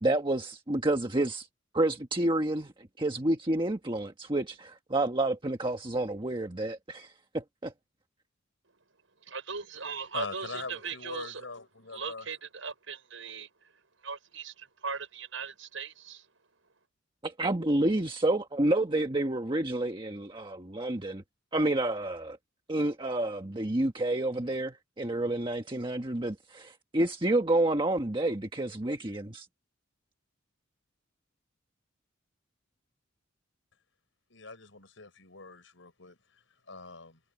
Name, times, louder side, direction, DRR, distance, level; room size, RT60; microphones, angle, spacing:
voice 1, 0.0-1.5 1.7-7.7 17.2-21.2 21.5-22.4 22.7-29.5, right 1 dB, 25° right, 1.4 m, -29 dB
voice 2, 9.2-11.4 11.9-13.5 14.0-16.2, right 5 dB, 80° right, 6.6 m, -39 dB
voice 3, 10.1-12.3 34.3-37.2, left 3 dB, 75° left, 5.1 m, -42 dB
head